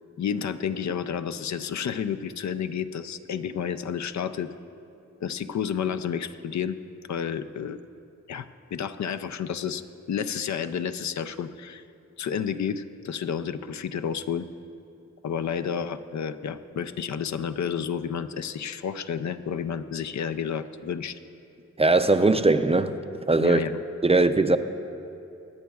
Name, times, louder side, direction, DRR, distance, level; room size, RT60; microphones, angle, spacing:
voice 1, 0.2-4.5 5.2-6.8 7.1-7.8 8.3-8.5 8.7-11.8 12.2-14.5 15.2-21.2 23.4-23.8, left 7 dB, 70° left, 0.5 m, -30 dB
voice 2, 21.8-22.9 23.3-23.6 24.0-24.6, right 2 dB, 20° right, 0.4 m, -20 dB
23.0 x 9.2 x 2.3 m
cardioid pair, 70°, 29 cm